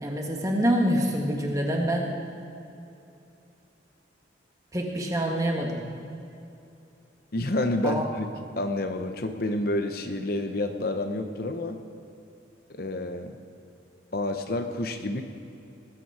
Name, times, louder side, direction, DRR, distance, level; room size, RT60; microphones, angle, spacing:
voice 1, 0.0-2.1 4.7-5.8 7.8-8.0, equal, 15° right, 0 dB, 1.5 m, -26 dB
voice 2, 7.3-8.3 8.6-11.8 12.7-13.4 14.1-15.2, left 1 dB, 50° left, 6 dB, 0.7 m, -29 dB
19.0 x 9.2 x 4.7 m, 2.7 s
head